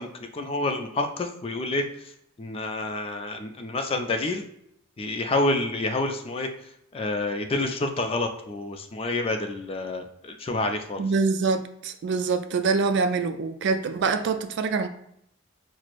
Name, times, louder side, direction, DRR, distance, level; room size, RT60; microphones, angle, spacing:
voice 1, 0.0-2.1 2.4-4.4 5.0-6.5 6.9-11.0, left 2 dB, 30° left, 0.4 m, -28 dB
voice 2, 11.0-14.9, right 4 dB, 60° right, 0.3 m, -25 dB
5.9 x 2.0 x 2.4 m
head